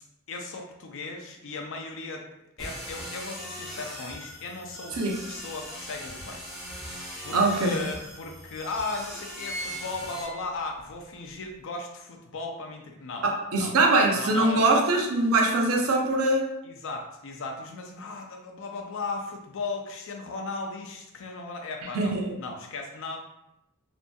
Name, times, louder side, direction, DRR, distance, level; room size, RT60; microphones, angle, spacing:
voice 1, 0.3-2.3 2.6-5.0 5.3-6.5 6.8-13.3 13.5-13.7 14.1-14.7 16.6-23.2, left 3 dB, 60° left, 2 dB, 0.4 m, -36 dB
sound 1, 2.6-10.2, equal, ahead, 0.6 m, -40 dB
sound 2, 5.7-6.8 7.5-7.6 7.8-7.9 8.6-8.8 9.1-10.9 11.3-11.4, right 1 dB, 90° left, 1.0 m, -39 dB
voice 2, 7.3-7.8 13.2-16.5 21.9-22.3, right 2 dB, 70° right, 0 dB, 0.5 m, -22 dB
2.6 x 2.6 x 2.2 m, 0.86 s
head